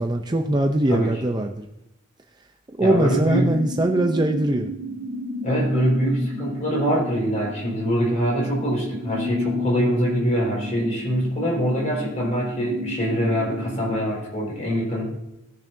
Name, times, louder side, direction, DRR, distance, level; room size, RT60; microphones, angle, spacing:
voice 1, 0.0-1.7 2.7-4.7, right 1 dB, 20° right, 4 dB, 0.5 m, -22 dB
voice 2, 2.8-3.5 5.4-15.1, equal, 35° left, -4 dB, 4.5 m, -24 dB
sound 1, 3.3-14.0, left 2 dB, 40° right, 3.4 m, -33 dB
19.0 x 7.1 x 2.7 m, 0.88 s
head